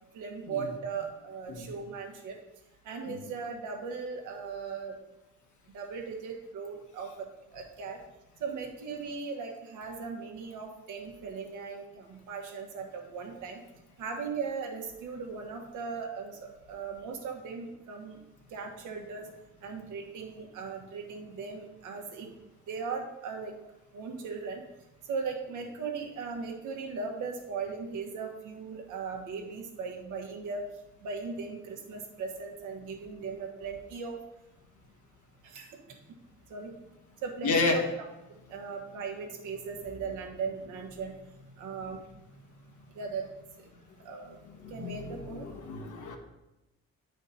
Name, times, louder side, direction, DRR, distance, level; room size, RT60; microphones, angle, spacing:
voice 1, 0.1-2.4 2.8-5.0 5.7-8.0 8.4-13.6 14.0-18.2 18.5-19.3 19.6-22.3 22.7-23.6 23.9-24.6 25.1-30.6 31.0-34.2 35.4-36.0 36.5-36.7 37.2-37.8 38.5-41.1 41.6-42.0 42.9-43.3 43.6-43.7 44.0-44.4 44.7-45.5, right 5 dB, 90° right, 2 dB, 1.6 m, -38 dB
voice 2, 37.4-37.8 44.6-46.2, left 3 dB, 75° left, 3 dB, 1.4 m, -31 dB
8.8 x 5.1 x 4.2 m, 0.97 s
cardioid pair, 90°, 30 cm